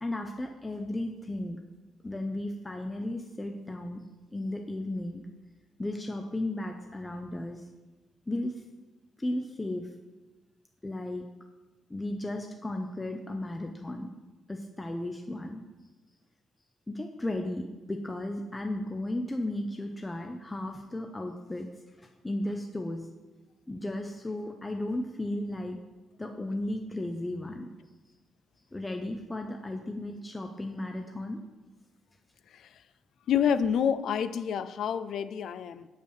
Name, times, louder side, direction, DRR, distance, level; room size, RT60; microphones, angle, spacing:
voice 1, 0.0-1.6 2.0-4.0 4.3-5.3 5.8-7.6 8.3-8.5 9.2-9.9 10.8-11.2 11.9-14.1 14.5-15.6 16.9-21.7 22.0-23.1 23.7-25.8 26.2-27.7 28.7-31.4, left 1 dB, 15° left, 3 dB, 0.5 m, -35 dB
voice 2, 32.5-32.8 33.3-35.9, left 8 dB, 70° left, 13 dB, 0.3 m, -28 dB
5.5 x 4.8 x 6.4 m, 1.2 s
cardioid pair, 90°, 0 cm